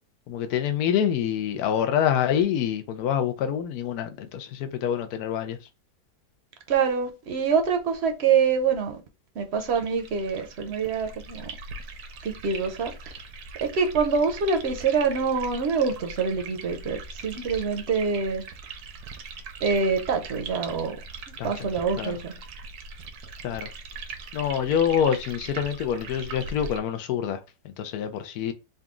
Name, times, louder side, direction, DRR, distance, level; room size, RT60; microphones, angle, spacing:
voice 1, 0.3-5.6 21.4-21.5 22.0-22.2 23.4-23.7 24.3-28.5, left 9 dB, 75° left, 1.1 m, -26 dB
voice 2, 6.7-9.0 9.4-11.5 12.2-13.1 13.6-18.4 19.6-21.0 21.4-22.3, right 5 dB, 55° right, 0.8 m, -25 dB
sound 1, 9.6-26.8, right 4 dB, 75° right, 1.2 m, -41 dB
4.0 x 2.3 x 3.6 m
omnidirectional pair, 1.7 m